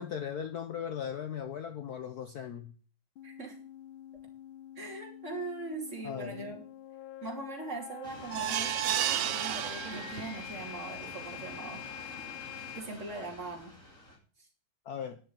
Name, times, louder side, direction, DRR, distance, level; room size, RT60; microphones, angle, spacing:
voice 1, 0.0-2.7 6.0-6.5 14.9-15.2, left 8 dB, 60° left, 8 dB, 1.1 m, -38 dB
sound 1, 3.2-12.8, left 12 dB, 80° left, 1.5 m, -46 dB
voice 2, 3.2-3.6 4.8-6.6 7.2-11.9 12.7-13.7 14.4-14.5, right 2 dB, 35° right, -1 dB, 3.2 m, -41 dB
sound 2, 8.0-14.2, left 1 dB, 40° left, 3.2 m, -48 dB
sound 3, 8.3-10.6 11.0-11.1 11.5-11.6, right 11 dB, 80° right, 1.6 m, -32 dB
10.5 x 7.0 x 8.0 m, 0.40 s
omnidirectional pair, 2.2 m